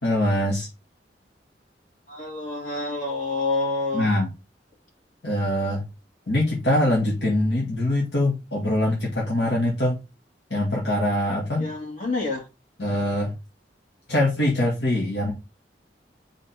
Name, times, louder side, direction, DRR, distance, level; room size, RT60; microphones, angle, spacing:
voice 1, 0.0-0.7 3.9-4.3 5.2-5.8 6.3-10.0 10.5-11.7 12.8-13.3 14.1-15.3, left 1 dB, 70° left, 1.8 m, -23 dB
voice 2, 2.1-4.1 11.6-12.4, left 3 dB, 45° left, 3.2 m, -28 dB
5.0 x 3.7 x 5.6 m
head